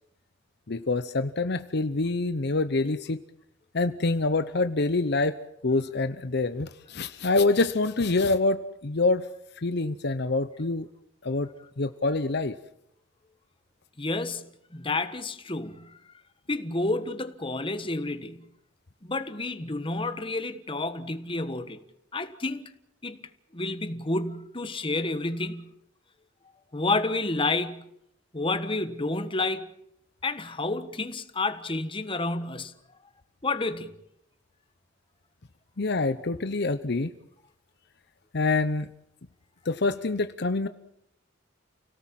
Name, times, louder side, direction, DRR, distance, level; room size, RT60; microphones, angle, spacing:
voice 1, 0.7-3.2 3.7-5.4 5.6-9.3 9.6-10.9 11.2-11.5 11.8-12.5 35.8-37.1 38.3-38.9 39.7-40.7, left 3 dB, 55° left, 0.8 m, -26 dB
voice 2, 14.0-16.0 16.5-18.5 19.0-21.8 22.1-22.7 23.0-23.2 23.5-25.7 26.7-27.9 28.3-29.7 30.2-32.7 33.4-33.9, left 2 dB, 25° left, 1.4 m, -30 dB
29.5 x 18.0 x 7.5 m
head